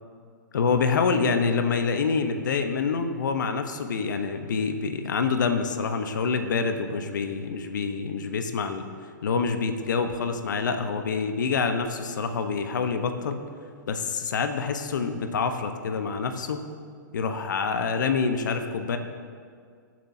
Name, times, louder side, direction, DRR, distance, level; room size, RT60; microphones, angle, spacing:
voice 1, 0.5-8.9 9.2-13.4 13.9-16.6 17.1-19.0, left 5 dB, 70° left, 7 dB, 1.1 m, -26 dB
22.5 x 7.5 x 2.8 m, 2.2 s
hypercardioid pair, 120°, 11 cm